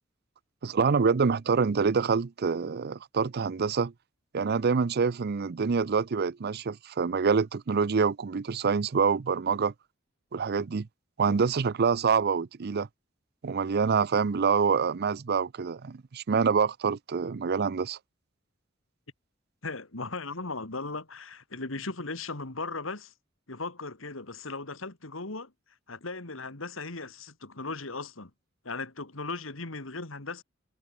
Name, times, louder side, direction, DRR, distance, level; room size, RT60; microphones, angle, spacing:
voice 1, 0.6-3.9 4.3-9.7 10.3-10.9 11.2-12.9 13.4-18.0, right 5 dB, 55° right, 0.5 m, -26 dB
voice 2, 19.6-23.1 23.5-25.5 25.9-28.3 28.6-30.4, left 3 dB, 80° left, 2.6 m, -37 dB
head